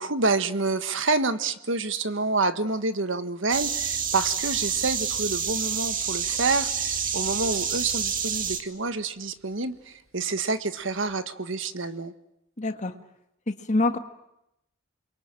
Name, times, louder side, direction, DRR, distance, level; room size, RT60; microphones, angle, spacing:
voice 1, 0.0-12.1, right 3 dB, 60° right, 11 dB, 1.5 m, -28 dB
sound 1, 3.5-8.6, right 7 dB, 40° right, 2.1 m, -28 dB
sound 2, 5.3-8.0 10.1-10.2 11.1-11.2, right 7 dB, 85° right, 7.3 m, -41 dB
voice 2, 12.6-12.9 13.5-14.0, left 2 dB, 35° left, 7 dB, 1.8 m, -25 dB
28.5 x 23.0 x 9.0 m, 0.84 s
head